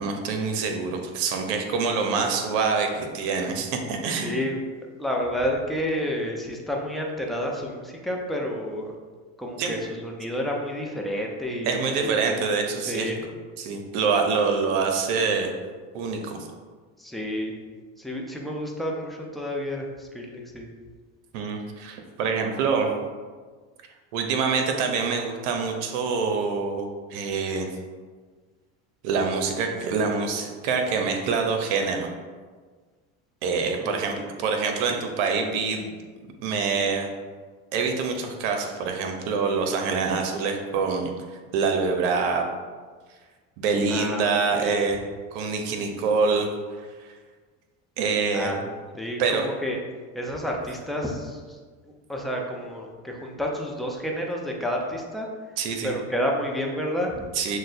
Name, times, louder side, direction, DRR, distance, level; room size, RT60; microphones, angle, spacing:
voice 1, 0.0-4.4 9.6-9.7 11.6-13.1 13.6-15.5 15.9-16.5 21.3-22.9 24.1-27.7 29.0-32.1 33.4-36.0 36.4-37.1 37.7-41.1 41.5-42.4 43.6-45.0 45.3-46.5 47.0-47.1 48.0-48.5 49.2-49.4 55.6-55.9 57.3-57.6, right 5 dB, 75° right, 4 dB, 0.7 m, -25 dB
voice 2, 4.2-8.9 9.4-12.2 12.9-13.3 17.0-17.5 18.0-20.7 33.7-34.2 43.9-44.8 48.3-49.8 50.1-51.6 51.8-55.3 55.8-57.2, equal, ahead, -1 dB, 0.5 m, -30 dB
6.2 x 2.2 x 2.6 m, 1.5 s
supercardioid pair, 95°, 37 cm